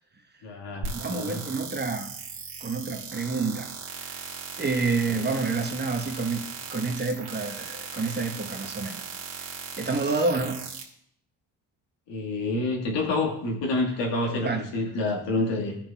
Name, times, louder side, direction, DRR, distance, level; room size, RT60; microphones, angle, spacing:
voice 1, 0.4-1.5 5.1-5.2 12.1-15.8, left 2 dB, 80° left, 0 dB, 1.8 m, -28 dB
sound 1, 0.8-10.8, right 5 dB, 70° right, 1.7 m, -38 dB
voice 2, 0.9-2.1 2.6-3.7 4.0-4.2 4.6-6.4 6.7-9.1 9.8-10.7 14.4-14.7, right 3 dB, 25° right, 4 dB, 1.1 m, -28 dB
11.5 x 5.9 x 2.3 m, 0.70 s
supercardioid pair, 65°, 43 cm